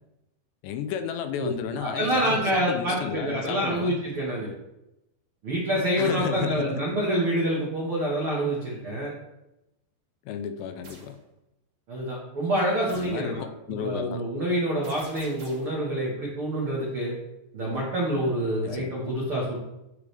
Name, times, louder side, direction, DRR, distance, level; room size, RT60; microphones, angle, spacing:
voice 1, 0.6-4.0 6.0-6.9 10.3-11.2 12.9-14.2 18.6-19.0, left 8 dB, 85° left, 10 dB, 2.8 m, -33 dB
voice 2, 1.4-4.5 5.4-9.1 11.9-13.4 13.7-17.1 17.5-19.6, right 1 dB, 90° right, -4 dB, 1.1 m, -27 dB
sound 1, 10.8-11.1 12.9-13.2 14.8-15.8, right 2 dB, 40° right, 2.0 m, -48 dB
13.5 x 4.9 x 3.4 m, 0.92 s
omnidirectional pair, 5.0 m